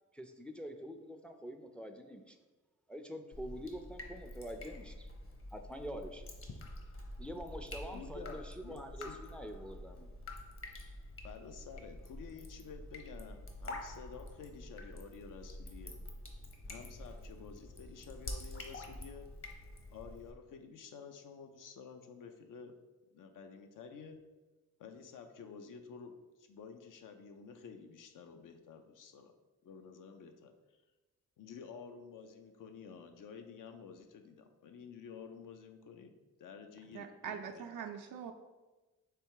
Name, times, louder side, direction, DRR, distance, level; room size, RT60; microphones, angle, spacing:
voice 1, 0.1-2.4 2.9-5.1 5.5-6.2 7.2-10.1, equal, 5° left, 5 dB, 0.4 m, -45 dB
Drip, 3.3-20.3, left 1 dB, 45° left, 0.8 m, -47 dB
voice 2, 7.9-9.2 11.2-16.0 16.7-19.3 19.9-22.7 23.1-24.2 24.8-26.1 26.4-29.3 29.6-30.5 31.4-36.1 36.4-37.7, left 6 dB, 80° left, 6 dB, 0.6 m, -51 dB
voice 3, 36.9-38.3, right 7 dB, 80° right, 4 dB, 0.5 m, -43 dB
3.4 x 3.2 x 4.5 m, 1.2 s
cardioid pair, 80°, 31 cm